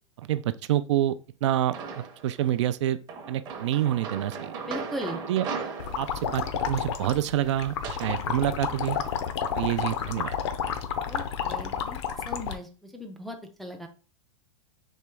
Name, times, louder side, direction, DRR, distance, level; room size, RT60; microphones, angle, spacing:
voice 1, 0.2-3.0 3.3-4.5 5.3-5.5 6.0-9.0 9.6-10.4, right 12 dB, 65° right, 0.4 m, -27 dB
sound 1, 1.7-2.3 3.1-8.2, right 5 dB, 25° right, 0.7 m, -38 dB
voice 2, 4.7-5.2 11.1-13.9, equal, ahead, 0.4 m, -38 dB
sound 2, 5.8-12.6, left 8 dB, 60° left, 0.7 m, -31 dB
4.3 x 2.9 x 3.5 m
supercardioid pair, 155°, 16 cm